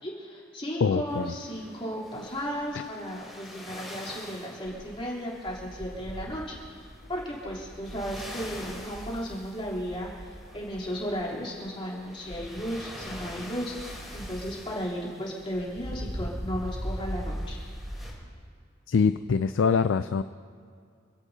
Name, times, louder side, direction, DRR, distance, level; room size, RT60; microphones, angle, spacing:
voice 1, 0.0-17.6, equal, 25° left, -5 dB, 3.5 m, -35 dB
voice 2, 0.8-1.3 18.9-20.2, left 5 dB, 75° left, 10 dB, 0.4 m, -24 dB
sound 1, 1.1-18.1, equal, ahead, 3.5 m, -41 dB
27.5 x 16.5 x 2.8 m, 2.2 s
head